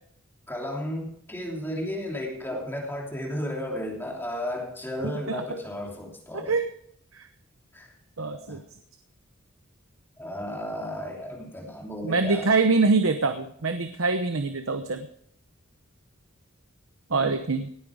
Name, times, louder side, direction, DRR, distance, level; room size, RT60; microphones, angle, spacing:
voice 1, 0.5-6.5 7.7-7.9 8.4-8.6 10.2-12.5 17.1-17.3, left 1 dB, 10° left, -1 dB, 3.1 m, -34 dB
voice 2, 5.0-5.4 6.3-6.7 7.1-7.3 8.2-8.6 12.0-15.1 17.1-17.7, right 3 dB, 75° right, 8 dB, 1.0 m, -25 dB
18.0 x 9.3 x 4.9 m, 0.66 s
head